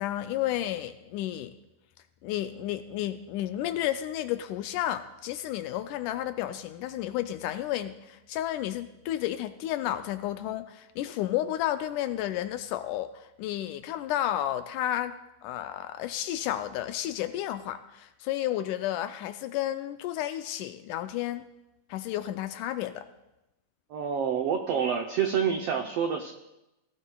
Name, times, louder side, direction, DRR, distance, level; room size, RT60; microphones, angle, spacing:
voice 1, 0.0-1.5 2.2-15.2 15.4-21.4 21.9-23.1, left 13 dB, 80° left, 9 dB, 1.9 m, -32 dB
voice 2, 23.9-26.3, right 7 dB, 90° right, 3 dB, 1.3 m, -27 dB
18.0 x 16.5 x 2.3 m, 0.94 s
omnidirectional pair, 3.9 m